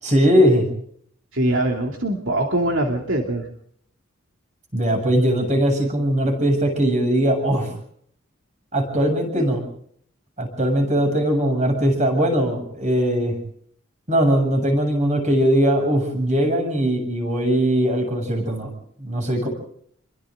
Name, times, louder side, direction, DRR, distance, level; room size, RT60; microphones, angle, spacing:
voice 1, 0.0-0.6 4.7-7.7 8.7-9.6 10.4-13.3 14.1-18.7 19.0-19.5, equal, 35° right, 4 dB, 7.7 m, -20 dB
voice 2, 1.3-3.5 9.4-9.5, right 1 dB, 70° right, 2 dB, 2.8 m, -22 dB
28.5 x 24.0 x 3.9 m, 0.64 s
head